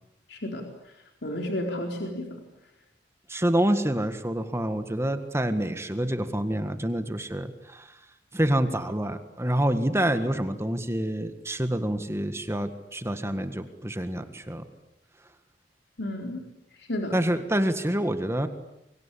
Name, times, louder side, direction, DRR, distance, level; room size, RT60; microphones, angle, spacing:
voice 1, 0.3-0.6 1.2-2.2 16.0-16.4 16.9-17.1, left 1 dB, 65° left, 2 dB, 4.3 m, -31 dB
voice 2, 3.3-8.0 8.3-14.6 17.1-18.5, right 1 dB, 15° right, 9 dB, 1.7 m, -27 dB
29.0 x 23.5 x 8.5 m, 0.87 s
head